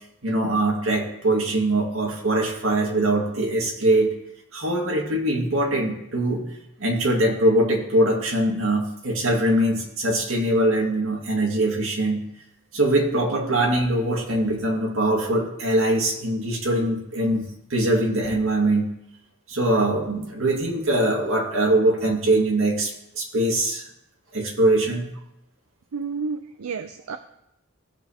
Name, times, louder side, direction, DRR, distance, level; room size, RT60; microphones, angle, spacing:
voice 1, 0.2-4.1 4.5-6.4 6.8-12.3 12.7-17.4 17.7-18.9 19.5-23.8 24.3-25.1, right 1 dB, 70° right, -1 dB, 2.0 m, -22 dB
voice 2, 25.9-27.2, right 5 dB, 85° right, 8 dB, 0.5 m, -30 dB
17.0 x 6.7 x 2.9 m, 0.84 s
head